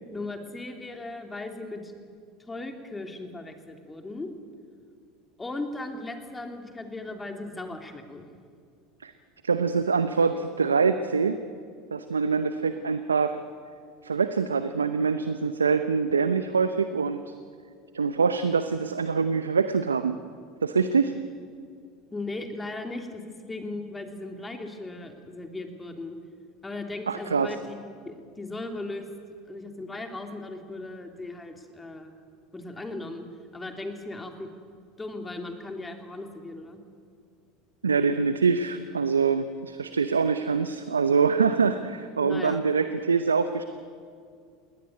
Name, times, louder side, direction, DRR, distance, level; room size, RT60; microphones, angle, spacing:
voice 1, 0.1-1.9 2.5-4.3 5.4-8.2 22.1-26.2 26.6-27.8 28.0-29.1 29.5-32.1 32.5-33.3 33.5-34.5 35.0-36.8 42.2-42.6, left 2 dB, 15° left, 4 dB, 3.2 m, -37 dB
voice 2, 9.4-11.4 11.9-13.4 14.0-17.3 17.9-20.2 20.6-21.1 27.1-27.5 37.8-43.6, right 5 dB, 90° right, 11 dB, 0.7 m, -24 dB
21.0 x 18.5 x 9.6 m, 2.2 s
hypercardioid pair, 80°, 0 cm